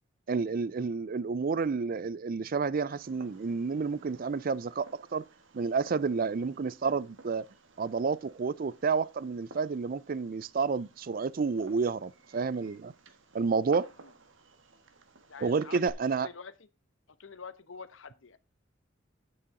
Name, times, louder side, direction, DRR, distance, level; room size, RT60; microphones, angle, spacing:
voice 1, 0.3-5.2 5.5-7.5 7.8-12.9 13.3-13.9 15.4-16.3, right 5 dB, 45° right, 0.4 m, -30 dB
Fireworks, 2.9-15.9, right 3 dB, 70° right, 1.4 m, -57 dB
voice 2, 13.8-14.1 15.3-15.9 16.2-16.5 17.2-18.4, left 5 dB, 75° left, 1.0 m, -46 dB
9.7 x 8.7 x 3.7 m
head